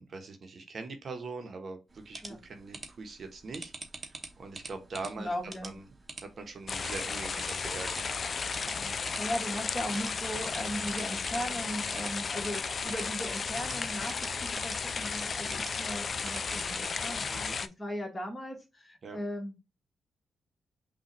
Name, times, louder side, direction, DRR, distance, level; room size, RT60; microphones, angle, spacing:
voice 1, 0.0-3.7 4.0-5.3 5.6-5.8 6.4-8.0 17.3-17.6 19.0-19.2, right 3 dB, 55° right, 0.9 m, -42 dB
sound 1, 1.9-16.9, right 2 dB, 35° right, 0.9 m, -47 dB
voice 2, 5.2-5.7 8.8-19.5, equal, 25° left, 1.8 m, -38 dB
sound 2, 6.7-17.7, left 5 dB, 50° left, 0.3 m, -34 dB
5.6 x 2.4 x 3.0 m
supercardioid pair, 50°, 0 cm